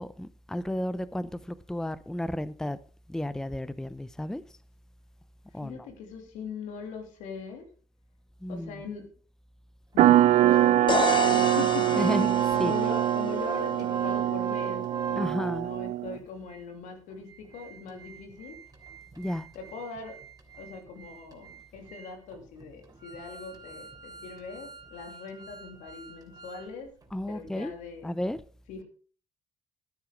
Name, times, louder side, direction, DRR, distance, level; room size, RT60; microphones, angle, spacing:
voice 1, 0.0-2.8 3.1-4.4 5.5-5.9 8.4-8.8 12.0-12.7 15.2-15.7 19.2-19.5 27.1-27.7 28.0-28.4, left 1 dB, 5° left, 0.6 m, -32 dB
voice 2, 5.5-7.7 8.5-9.1 9.9-18.6 19.5-20.2 20.6-26.9 27.3-28.1 28.7-28.8, left 5 dB, 85° left, 3.0 m, -41 dB
sound 1, 10.0-16.2, right 14 dB, 75° right, 0.5 m, -24 dB
Organ, 10.1-15.6 16.1-16.2 16.5-16.6 17.1-26.7 27.0-27.1, right 6 dB, 30° right, 3.2 m, -38 dB
sound 2, 10.9-14.7, left 6 dB, 40° left, 0.8 m, -33 dB
11.5 x 10.0 x 5.1 m
cardioid pair, 90°, 13 cm